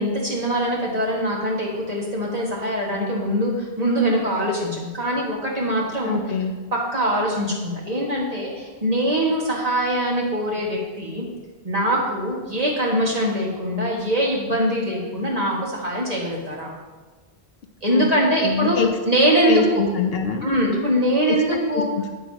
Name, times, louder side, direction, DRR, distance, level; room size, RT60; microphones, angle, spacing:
voice 1, 0.0-6.2 6.7-11.3 11.6-16.7 17.8-18.8 19.1-19.8 20.4-21.9, equal, 35° right, -3 dB, 1.9 m, -23 dB
voice 2, 6.0-6.5 17.9-18.1 18.4-18.9 19.5-20.5 21.3-22.1, left 5 dB, 65° left, 5 dB, 0.8 m, -24 dB
9.8 x 9.4 x 2.9 m, 1.4 s
omnidirectional pair, 1.1 m